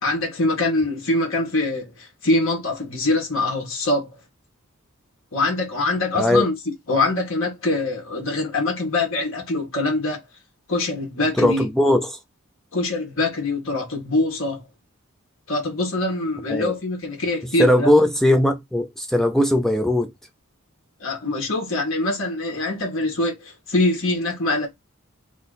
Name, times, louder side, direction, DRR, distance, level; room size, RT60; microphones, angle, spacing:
voice 1, 0.0-4.1 5.3-6.5 6.9-10.2 10.7-11.7 12.7-14.6 15.5-17.9 21.0-24.7, left 2 dB, 65° left, 1.8 m, -23 dB
voice 2, 6.2-6.5 11.4-12.2 16.5-16.7 17.6-20.1, left 1 dB, ahead, 0.5 m, -19 dB
3.8 x 3.1 x 4.0 m
head